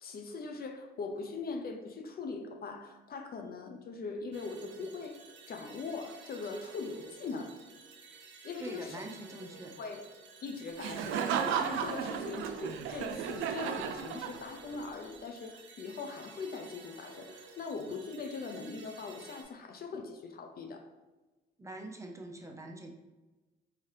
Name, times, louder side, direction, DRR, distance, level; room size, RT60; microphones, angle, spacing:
voice 1, 0.0-5.2 5.5-7.5 8.4-9.0 9.8-10.0 10.4-20.8, left 4 dB, 50° left, 5 dB, 0.6 m, -41 dB
sound 1, 4.3-19.4, right 4 dB, 70° right, 0.8 m, -53 dB
voice 2, 8.6-9.8 21.6-22.9, right 1 dB, 15° right, 2 dB, 0.6 m, -44 dB
Laughter, 10.8-14.7, right 8 dB, 85° right, 0.4 m, -34 dB
4.8 x 2.8 x 3.2 m, 1.2 s
cardioid pair, 90°, 20 cm